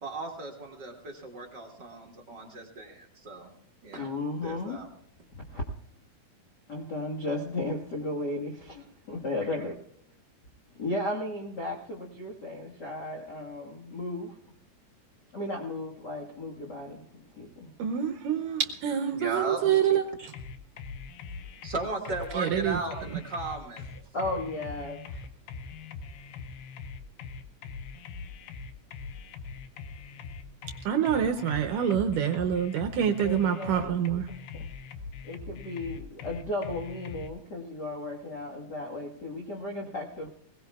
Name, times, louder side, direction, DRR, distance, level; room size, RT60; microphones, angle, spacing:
voice 1, 0.0-3.5 3.8-4.1 4.4-4.9 19.1-19.8 20.2-20.3 21.6-23.8, right 3 dB, 40° right, 0 dB, 1.6 m, -36 dB
voice 2, 4.0-4.8 5.3-5.6 6.7-9.7 10.8-14.4 15.3-17.0 17.3-17.7 24.1-25.0 33.2-33.9 35.3-40.3, left 2 dB, 55° left, -1 dB, 1.2 m, -34 dB
voice 3, 17.8-20.0 22.3-22.8 30.6-34.3, right 9 dB, 70° right, 6 dB, 2.2 m, -26 dB
sound 1, 20.3-37.3, left 5 dB, 90° left, 3.0 m, -42 dB
21.5 x 18.5 x 2.3 m, 0.71 s
omnidirectional pair, 4.5 m